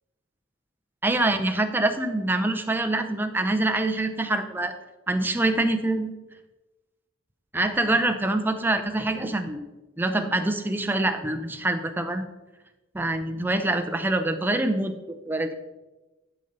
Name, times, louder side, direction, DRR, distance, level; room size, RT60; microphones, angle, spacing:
voice 1, 1.0-4.7 5.1-6.1 7.5-9.6 10.0-12.3 12.9-14.9 15.3-15.5, right 2 dB, 10° right, 6 dB, 0.5 m, -25 dB
11.0 x 5.4 x 3.9 m, 1.1 s
head